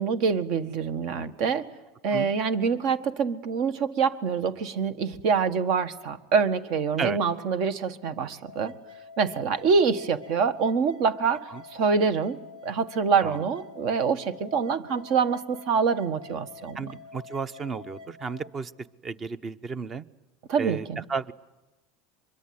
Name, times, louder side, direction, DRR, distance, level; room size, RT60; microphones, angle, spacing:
voice 1, 0.0-1.7 2.0-8.7 9.2-16.8 20.5-21.0, right 5 dB, 60° right, 11 dB, 1.6 m, -25 dB
sound 1, 8.5-18.5, left 5 dB, 75° right, 3.6 m, -47 dB
voice 2, 16.7-18.7 19.0-20.0 20.6-21.3, right 5 dB, 30° right, 15 dB, 0.9 m, -33 dB
24.0 x 22.5 x 9.7 m, 1.1 s
supercardioid pair, 120°, 0 cm